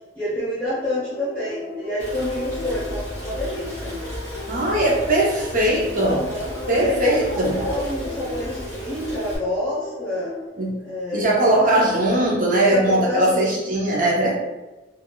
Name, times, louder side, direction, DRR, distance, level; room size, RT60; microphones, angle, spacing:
voice 1, 0.1-3.9 6.0-6.5 6.8-10.3 10.8-11.8 12.6-13.8, left 1 dB, 10° left, -12 dB, 1.0 m, -28 dB
sound 1, 0.6-10.5, left 2 dB, 85° left, 0.6 m, -35 dB
Rain, 2.0-9.4, equal, 20° right, 1.4 m, -35 dB
voice 2, 4.5-6.2 6.7-7.6 10.6-10.7 11.1-14.3, right 1 dB, 40° right, -3 dB, 0.6 m, -20 dB
3.3 x 2.5 x 2.2 m, 1.1 s
head